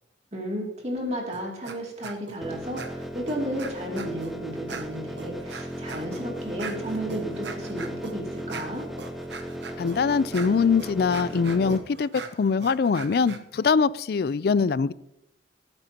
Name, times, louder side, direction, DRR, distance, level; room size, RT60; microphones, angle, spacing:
voice 1, 0.3-8.8, equal, 40° right, 0 dB, 2.5 m, -33 dB
sound 1, 1.3-1.8 2.0-2.4 2.8-4.3 4.7-13.4, right 4 dB, 75° right, 1.0 m, -40 dB
sound 2, 2.4-11.8, right 1 dB, ahead, 0.8 m, -36 dB
voice 2, 9.8-12.1 12.4-14.9, left 5 dB, 55° left, 18 dB, 0.3 m, -23 dB
18.0 x 8.8 x 2.9 m, 0.80 s
head